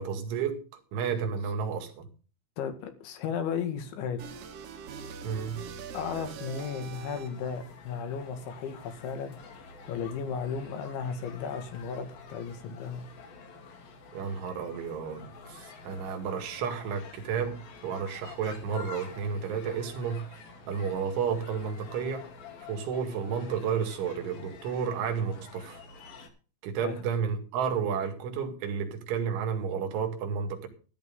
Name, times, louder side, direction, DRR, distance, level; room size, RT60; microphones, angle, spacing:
voice 1, 0.0-2.1 5.2-5.6 14.1-20.3 20.7-22.2 22.7-25.8 26.6-30.7, right 6 dB, 85° right, 4.6 m, -32 dB
voice 2, 2.6-4.2 5.9-13.1 26.8-27.0, left 6 dB, 75° left, 4.3 m, -35 dB
sound 1, 4.2-7.6, right 6 dB, 60° right, 2.5 m, -43 dB
sound 2, 7.2-26.3, left 4 dB, 55° left, 4.2 m, -48 dB
13.5 x 13.0 x 3.8 m
omnidirectional pair, 5.4 m